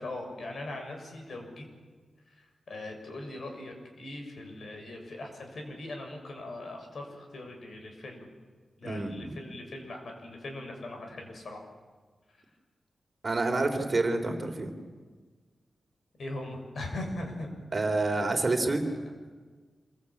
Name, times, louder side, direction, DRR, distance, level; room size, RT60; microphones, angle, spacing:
voice 1, 0.0-1.7 2.4-8.3 8.8-11.7 12.3-12.4 16.2-17.5 17.9-18.4, left 2 dB, 65° left, 3 dB, 6.6 m, -40 dB
voice 2, 8.8-9.4 13.2-14.7 17.7-18.8, right 2 dB, 35° right, 5 dB, 3.5 m, -28 dB
26.5 x 23.0 x 8.6 m, 1.5 s
wide cardioid pair, 100°, 0 cm